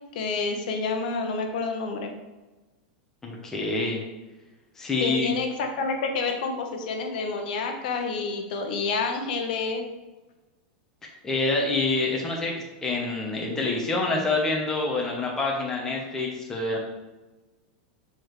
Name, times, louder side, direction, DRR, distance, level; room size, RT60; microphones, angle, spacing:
voice 1, 0.1-2.1 5.0-9.8, left 4 dB, 65° left, 4 dB, 0.9 m, -28 dB
voice 2, 3.2-4.0 4.8-5.3 11.2-12.5 12.8-16.8, left 3 dB, 10° left, -2 dB, 0.9 m, -26 dB
7.0 x 4.7 x 3.1 m, 1.1 s
supercardioid pair, 170°, 5 cm